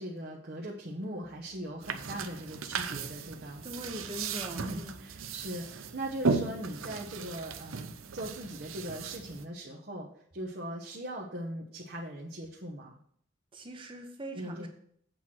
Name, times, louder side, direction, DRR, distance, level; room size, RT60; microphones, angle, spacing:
voice 1, 0.0-3.6 4.5-13.0 14.3-14.7, right 1 dB, 50° right, -3 dB, 1.1 m, -40 dB
sound 1, 1.2-5.3, right 1 dB, 10° right, 1.6 m, -65 dB
sound 2, 1.8-9.4, right 4 dB, 85° right, 0.7 m, -36 dB
voice 2, 3.6-4.9 13.5-14.7, equal, 25° right, 4 dB, 1.0 m, -41 dB
8.1 x 4.4 x 6.2 m, 0.64 s
head